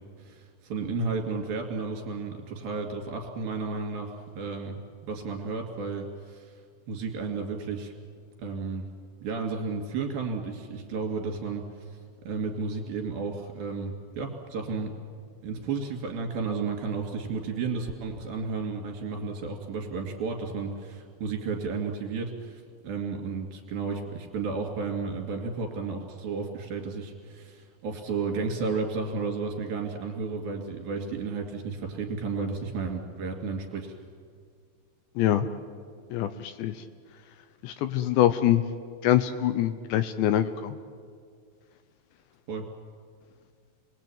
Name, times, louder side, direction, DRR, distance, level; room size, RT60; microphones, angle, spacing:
voice 1, 0.2-6.5 6.9-7.9 8.4-8.8 9.2-12.0 12.2-14.9 15.4-34.0 42.5-42.7, right 4 dB, 55° right, 3 dB, 3.9 m, -33 dB
voice 2, 35.2-35.5 36.1-36.7 37.6-38.6 39.0-40.8, left 12 dB, 80° left, 10 dB, 2.8 m, -24 dB
29.0 x 21.5 x 8.8 m, 2.1 s
omnidirectional pair, 5.6 m